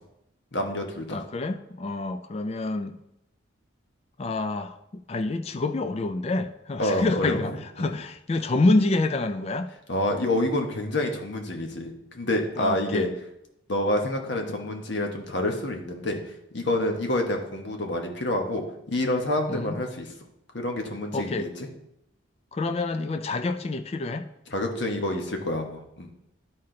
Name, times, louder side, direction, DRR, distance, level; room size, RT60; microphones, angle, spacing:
voice 1, 0.5-1.2 6.8-7.4 7.8-7.9 9.9-13.1 13.7-16.2 16.5-20.1 20.5-21.7 24.5-26.1, left 1 dB, 60° left, 3 dB, 1.1 m, -28 dB
voice 2, 1.1-3.0 4.2-9.7 12.6-13.1 19.5-19.8 21.1-21.5 22.5-24.3, left 2 dB, 30° left, 9 dB, 0.3 m, -27 dB
11.0 x 4.3 x 3.8 m, 0.82 s
head